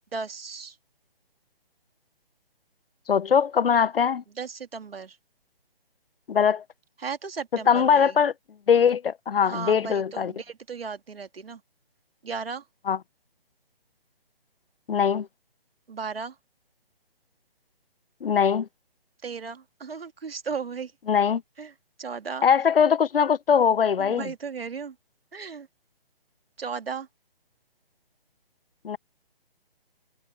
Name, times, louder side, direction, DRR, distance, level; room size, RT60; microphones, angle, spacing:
voice 1, 0.1-0.8 4.4-5.2 7.0-8.2 9.4-11.6 12.2-12.7 15.9-16.4 19.2-20.9 21.6-22.5 24.0-25.0 25.3-25.7 26.6-27.1, right 5 dB, 75° right, 2.1 m, -35 dB
voice 2, 3.1-4.2 6.3-6.6 7.7-8.3 8.7-10.3 12.9-13.0 14.9-15.3 18.2-18.7 21.1-21.4 22.4-24.3 28.8-29.0, left 7 dB, 70° left, 0.7 m, -21 dB
hypercardioid pair, 170°, 30 cm